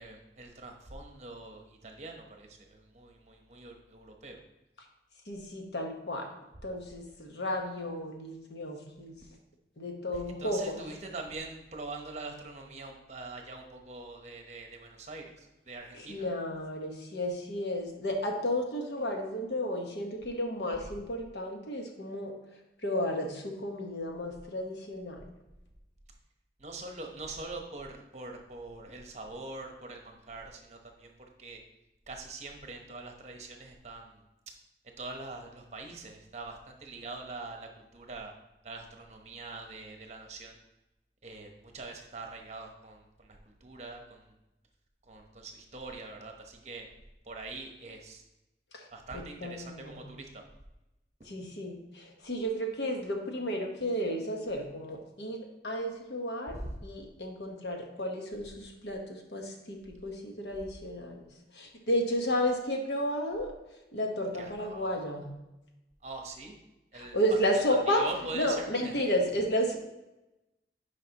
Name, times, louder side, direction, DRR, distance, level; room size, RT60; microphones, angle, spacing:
voice 1, 0.0-4.4 10.1-16.3 26.6-31.6 32.1-34.2 35.0-38.3 38.6-40.6 41.2-44.3 45.0-46.9 47.2-48.2 48.9-50.4 56.5-56.7 64.4-64.9 66.0-66.6 66.9-67.2 67.5-68.9, right 3 dB, 40° right, 3 dB, 1.0 m, -43 dB
voice 2, 5.3-6.3 6.6-9.2 9.8-10.8 15.9-22.3 22.8-25.2 48.7-48.9 49.1-50.1 51.2-56.6 56.8-61.2 61.5-63.5 63.9-65.3 66.9-69.8, equal, 80° left, 2 dB, 1.2 m, -32 dB
9.8 x 5.0 x 2.9 m, 0.96 s
head